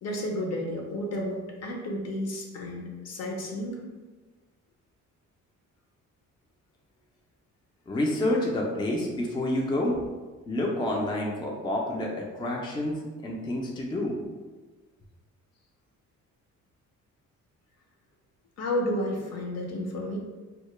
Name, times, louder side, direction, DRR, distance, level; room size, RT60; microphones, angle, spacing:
voice 1, 0.0-3.8 18.6-20.2, left 1 dB, 55° left, 0 dB, 0.6 m, -31 dB
voice 2, 7.9-10.0 10.5-12.1 12.4-14.2, left 1 dB, 15° left, -1 dB, 0.3 m, -28 dB
2.2 x 2.0 x 2.9 m, 1.3 s
cardioid pair, 90°, 30 cm